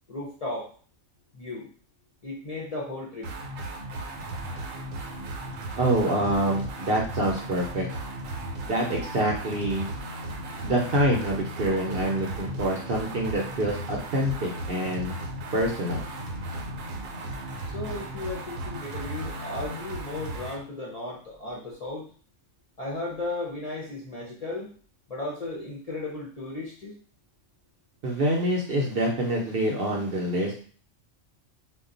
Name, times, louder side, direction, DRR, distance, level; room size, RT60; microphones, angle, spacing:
voice 1, 0.1-0.7 1.3-1.7 2.2-3.3 17.7-22.1 22.8-24.7 25.1-27.0, left 2 dB, 45° left, -5 dB, 0.5 m, -35 dB
sound 1, 3.2-20.6, right 1 dB, 75° right, 1.0 m, -36 dB
voice 2, 5.8-7.9 8.6-9.9 10.6-15.2 15.5-16.1 28.0-30.6, right 1 dB, 55° right, -1 dB, 0.7 m, -26 dB
2.3 x 2.2 x 3.7 m, 0.43 s
omnidirectional pair, 1.4 m